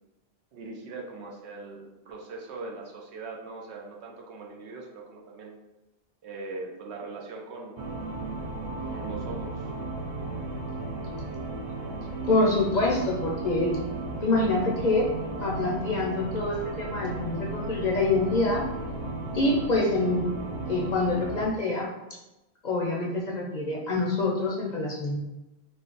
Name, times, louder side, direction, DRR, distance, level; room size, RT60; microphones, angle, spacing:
voice 1, 0.5-5.6 6.2-7.8 8.8-9.7, right 3 dB, 80° right, 0 dB, 0.9 m, -40 dB
sound 1, 7.8-21.5, right 2 dB, 50° right, 0.4 m, -35 dB
voice 2, 12.3-13.8 14.2-18.7 19.3-20.3 20.7-21.9 22.6-25.2, left 2 dB, 55° left, -2 dB, 0.5 m, -26 dB
3.1 x 2.0 x 3.8 m, 0.96 s
omnidirectional pair, 1.1 m